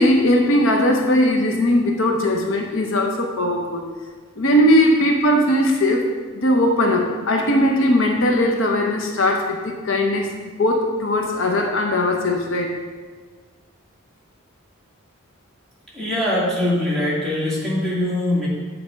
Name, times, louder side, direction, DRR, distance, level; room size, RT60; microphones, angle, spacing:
voice 1, 0.0-3.8 4.4-6.1 6.3-10.3 10.6-12.8, left 1 dB, 70° left, 2 dB, 0.7 m, -19 dB
voice 2, 15.9-18.5, left 1 dB, ahead, -9 dB, 2.2 m, -22 dB
8.8 x 4.2 x 5.1 m, 1.5 s
head